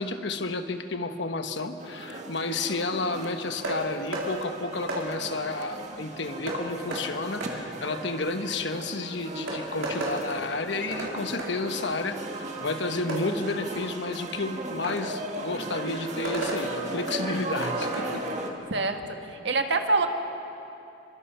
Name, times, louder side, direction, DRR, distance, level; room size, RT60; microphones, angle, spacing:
voice 1, 0.0-18.3, left 3 dB, 60° left, 8 dB, 1.2 m, -31 dB
sound 1, 1.8-18.5, right 2 dB, 35° right, 1.8 m, -37 dB
sound 2, 3.6-3.8 4.1-4.3 4.9-5.0 6.5-6.6 6.9-7.0 7.4-7.5 8.9-9.0 9.5-10.2 10.9-11.1 11.4-11.5 13.1-13.2 14.8-15.0 16.2-16.6 17.6-18.1, right 2 dB, 85° right, 4.4 m, -32 dB
voice 2, 19.4-20.1, right 3 dB, 60° right, 5 dB, 1.6 m, -25 dB
25.0 x 23.0 x 5.6 m, 2.8 s
head